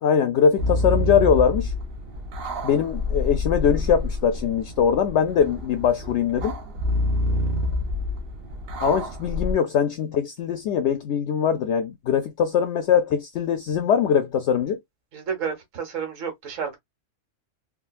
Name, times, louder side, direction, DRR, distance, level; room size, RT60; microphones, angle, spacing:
voice 1, 0.0-1.7 2.6-6.5 8.8-14.8, left 7 dB, 65° left, 0.8 m, -22 dB
sound 1, 0.6-9.5, left 2 dB, 50° right, 1.0 m, -27 dB
voice 2, 15.1-16.8, right 6 dB, 70° right, 1.5 m, -30 dB
3.6 x 2.3 x 2.3 m
omnidirectional pair, 1.4 m